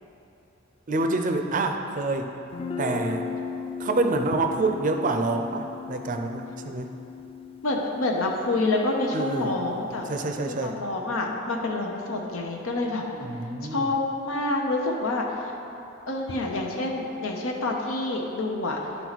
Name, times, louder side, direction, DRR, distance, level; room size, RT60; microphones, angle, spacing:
voice 1, 0.9-2.3 2.8-3.2 3.8-6.9 9.1-9.6 10.1-10.8 13.1-13.9, right 2 dB, 40° right, 5 dB, 0.5 m, -27 dB
Guitar, 2.5-10.2, left 6 dB, 30° left, 0.4 m, -37 dB
voice 2, 7.6-10.0 10.5-13.0 13.7-15.3 16.1-18.8, left 2 dB, 85° left, 0 dB, 0.7 m, -27 dB
11.0 x 4.6 x 4.0 m, 2.8 s
head